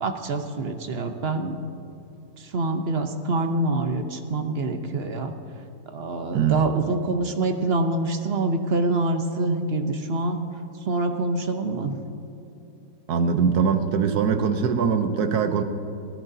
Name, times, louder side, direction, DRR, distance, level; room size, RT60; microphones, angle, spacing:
voice 1, 0.0-1.6 2.5-5.3 5.9-10.4 10.9-11.9, right 2 dB, 45° right, 6 dB, 0.8 m, -26 dB
voice 2, 6.3-6.6 13.1-15.6, right 6 dB, 70° right, 8 dB, 1.3 m, -22 dB
22.5 x 15.0 x 2.7 m, 2.8 s
omnidirectional pair, 1.8 m